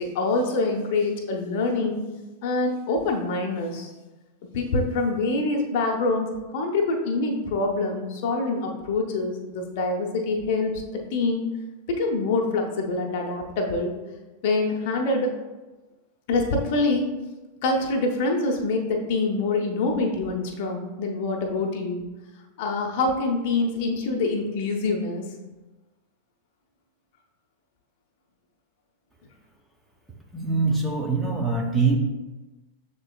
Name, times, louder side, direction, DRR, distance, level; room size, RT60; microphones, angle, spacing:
voice 1, 0.0-2.1 2.4-3.9 4.5-10.7 11.1-11.4 11.9-13.9 14.4-15.4 16.3-17.1 17.6-22.1 22.6-25.2, left 3 dB, 50° left, 2 dB, 0.7 m, -25 dB
voice 2, 30.3-32.0, right 4 dB, 5° right, 0 dB, 0.6 m, -23 dB
6.2 x 3.8 x 2.2 m, 1.1 s
figure-of-eight pair, 90°, 0 cm